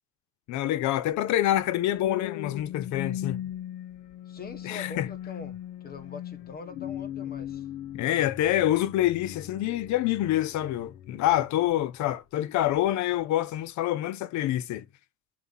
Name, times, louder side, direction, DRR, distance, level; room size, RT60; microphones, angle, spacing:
voice 1, 0.5-3.4 4.6-5.1 7.9-14.8, left 13 dB, 60° left, 0.7 m, -26 dB
sound 1, 1.8-12.1 12.6-12.9, left 11 dB, 85° left, 1.3 m, -39 dB
voice 2, 4.3-5.6 5.8-7.6, left 4 dB, 30° left, 1.3 m, -43 dB
7.3 x 3.0 x 5.5 m
cardioid pair, 130°, 33 cm